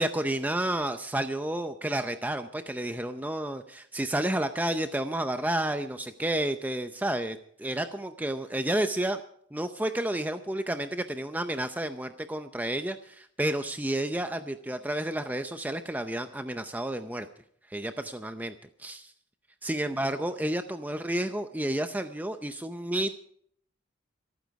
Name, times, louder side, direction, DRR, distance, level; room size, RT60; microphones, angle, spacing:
voice 1, 0.0-9.2 9.5-17.3 17.7-19.1 19.6-23.2, right 1 dB, 10° right, 8 dB, 0.6 m, -31 dB
25.5 x 9.3 x 4.7 m, 0.65 s
head